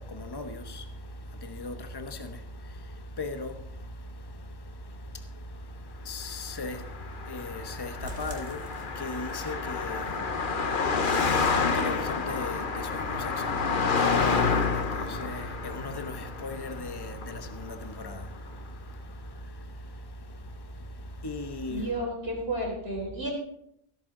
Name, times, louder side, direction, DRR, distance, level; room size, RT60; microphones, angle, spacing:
voice 1, 0.0-22.0, left 2 dB, 20° left, 1.0 m, -39 dB
Car passing by, 6.5-18.1, left 4 dB, 45° left, 1.1 m, -29 dB
sound 1, 8.0-9.5 9.9-10.0 10.4-10.5 10.9-11.0, right 2 dB, 70° right, 2.4 m, -44 dB
voice 2, 21.7-23.3, right 1 dB, 50° right, 4.3 m, -32 dB
15.5 x 13.0 x 3.9 m
omnidirectional pair, 1.3 m